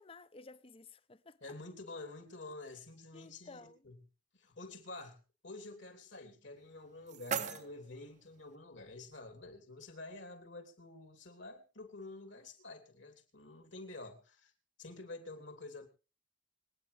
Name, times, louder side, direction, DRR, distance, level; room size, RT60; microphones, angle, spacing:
voice 1, 0.0-1.6 3.1-3.9, left 3 dB, 30° left, 0.6 m, -54 dB
voice 2, 1.4-4.0 4.3-5.2 5.4-14.5 14.8-15.9, left 2 dB, 65° left, 3.3 m, -49 dB
sound 1, 6.6-8.6, right 6 dB, 35° right, 0.7 m, -42 dB
25.5 x 9.6 x 3.4 m
head